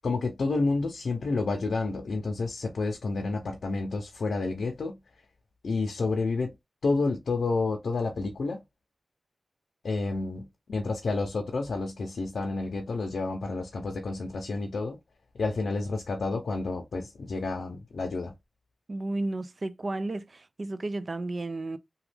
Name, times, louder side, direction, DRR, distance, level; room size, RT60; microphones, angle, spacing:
voice 1, 0.0-5.0 5.6-6.5 6.8-8.6 9.8-15.0 15.3-18.3, left 3 dB, 85° left, 0.6 m, -30 dB
voice 2, 18.9-21.8, right 2 dB, 45° right, 0.4 m, -33 dB
3.0 x 2.3 x 3.3 m
wide cardioid pair, 90°, 0 cm